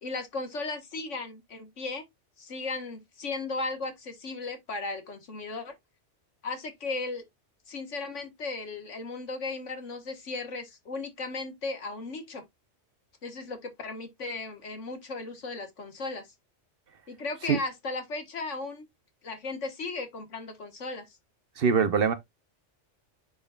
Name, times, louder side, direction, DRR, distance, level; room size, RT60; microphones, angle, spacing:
voice 1, 0.0-2.0 2.4-5.7 6.4-7.2 7.7-12.4 13.2-16.3 17.1-18.9 19.2-21.2, left 3 dB, 80° left, 1.8 m, -36 dB
voice 2, 21.6-22.1, right 6 dB, 55° right, 0.9 m, -23 dB
10.5 x 4.0 x 2.4 m
omnidirectional pair, 1.2 m